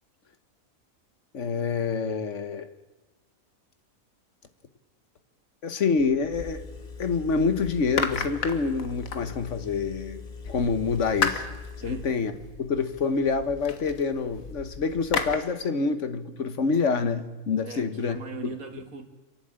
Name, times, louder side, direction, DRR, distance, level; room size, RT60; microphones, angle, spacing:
voice 1, 1.3-2.7 5.6-6.6 7.0-10.2 10.5-11.5 11.8-12.3 12.6-18.2, left 5 dB, 60° left, 10 dB, 1.5 m, -27 dB
sound 1, 6.0-7.2 7.6-9.8 10.4-15.4, left 5 dB, 85° left, 1.8 m, -34 dB
Engine, 6.3-12.1, left 5 dB, 40° left, 1.0 m, -42 dB
voice 2, 17.6-19.1, right 4 dB, 90° right, 6 dB, 2.3 m, -40 dB
28.0 x 11.5 x 8.8 m, 1.1 s
omnidirectional pair, 1.4 m